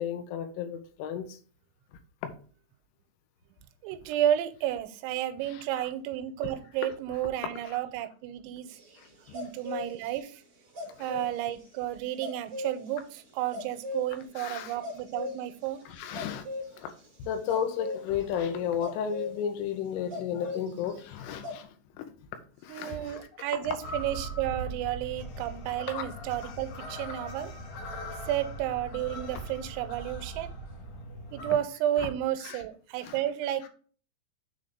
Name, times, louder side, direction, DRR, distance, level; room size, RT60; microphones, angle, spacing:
voice 1, 0.0-1.4 2.2-2.3 5.5-5.6 11.0-11.1 14.4-14.7 15.9-16.5 16.8-16.9 17.2-21.7 22.0-22.1 22.6-23.3 25.9-26.0 26.4-26.9 32.4-32.6 33.0-33.2, left 8 dB, 85° left, 3.3 m, -33 dB
voice 2, 3.8-8.7 9.3-10.4 11.0-15.8 22.7-27.5 28.3-30.5 31.3-33.7, right 12 dB, 90° right, 3.0 m, -32 dB
sound 1, 8.7-10.1 10.7-11.4 12.2-12.9 13.5-14.4 14.7-15.4 16.0-16.7 17.5-18.0 18.8-19.3 20.1-20.9 21.2-21.6, left 3 dB, 30° right, 1.7 m, -37 dB
sound 2, 23.8-31.5, right 1 dB, 65° left, 2.3 m, -40 dB
7.1 x 3.9 x 5.0 m
omnidirectional pair, 5.4 m